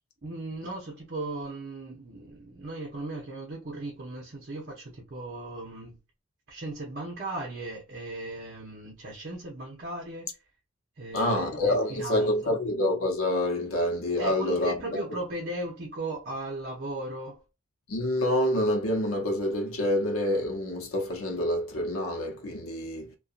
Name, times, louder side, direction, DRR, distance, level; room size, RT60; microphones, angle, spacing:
voice 1, 0.2-6.0 6.5-10.3 11.0-12.3 14.2-17.4, right 2 dB, 50° right, 0.7 m, -37 dB
voice 2, 11.1-15.0 17.9-23.2, left 1 dB, 85° left, 0.7 m, -27 dB
2.6 x 2.2 x 2.4 m
head